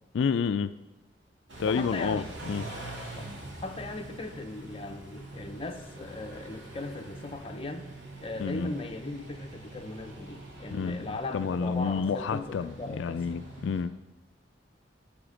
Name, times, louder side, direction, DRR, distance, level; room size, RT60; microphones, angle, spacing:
voice 1, 0.1-0.7 1.6-2.7 8.4-8.7 10.7-13.9, left 5 dB, 85° left, 11 dB, 0.3 m, -29 dB
Car / Idling / Accelerating revving vroom, 1.5-13.8, right 2 dB, 85° right, 2.7 m, -44 dB
voice 2, 1.6-2.2 3.1-3.2 3.6-7.9 8.2-13.2, left 2 dB, 30° left, 5 dB, 0.7 m, -38 dB
11.0 x 5.0 x 5.1 m, 1.0 s
head